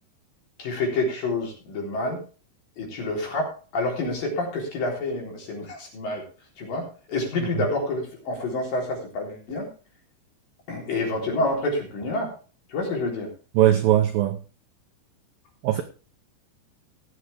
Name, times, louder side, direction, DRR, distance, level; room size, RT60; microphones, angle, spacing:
voice 1, 0.6-2.2 2.8-6.3 6.6-9.7 10.7-12.3 12.7-13.3, left 2 dB, 50° left, 5.2 m, -28 dB
voice 2, 13.6-14.4 15.6-15.8, right 12 dB, 80° right, 2.0 m, -19 dB
19.5 x 7.7 x 3.5 m
omnidirectional pair, 5.3 m